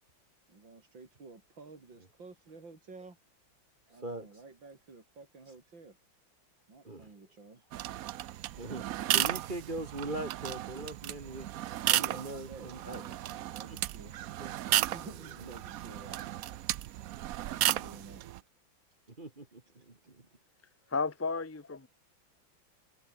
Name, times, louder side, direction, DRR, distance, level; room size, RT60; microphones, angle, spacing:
voice 1, 0.5-3.2 3.9-6.0 6.7-7.6 11.8-13.2 13.5-14.2 14.8-16.3 17.5-18.3, right 3 dB, 65° right, 5.0 m, -51 dB
voice 2, 3.9-4.4 5.5-5.6 6.8-7.1 8.6-8.8 9.1-11.5 11.9-13.8 14.0-14.1 14.4-15.5 17.8-18.0 19.2-20.3 21.3-21.4, right 2 dB, 25° right, 2.1 m, -42 dB
sound 1, 7.7-18.4, right 13 dB, 85° right, 0.7 m, -34 dB
voice 3, 20.9-21.9, left 4 dB, 20° left, 0.4 m, -33 dB
omnidirectional pair, 2.2 m